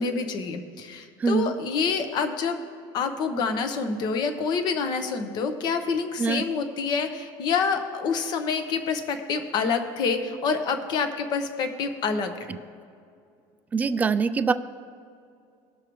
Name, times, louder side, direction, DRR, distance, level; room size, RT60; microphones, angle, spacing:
voice 1, 0.0-2.6 2.9-12.5, left 5 dB, 40° left, 8 dB, 0.9 m, -27 dB
voice 2, 1.2-1.5 6.2-6.4 13.7-14.5, right 5 dB, 15° right, 10 dB, 0.3 m, -23 dB
19.5 x 6.6 x 3.1 m, 2.4 s
cardioid pair, 155°, 11 cm